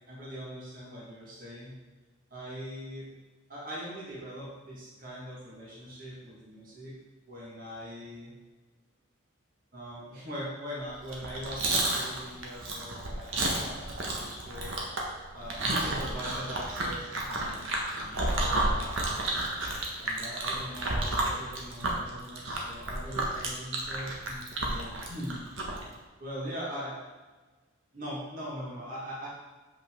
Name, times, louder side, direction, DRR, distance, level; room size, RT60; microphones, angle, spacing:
voice 1, 0.1-1.8 2.3-3.1 3.5-6.9 7.3-8.3 9.7-13.9 14.1-14.7 15.3-17.7 17.9-19.2 20.0-25.4 26.2-27.0 27.9-29.3, equal, 45° right, -5 dB, 1.7 m, -41 dB
Chewing mastication, 11.0-25.8, right 2 dB, 80° right, 1.4 m, -31 dB
7.6 x 5.6 x 3.7 m, 1.3 s
head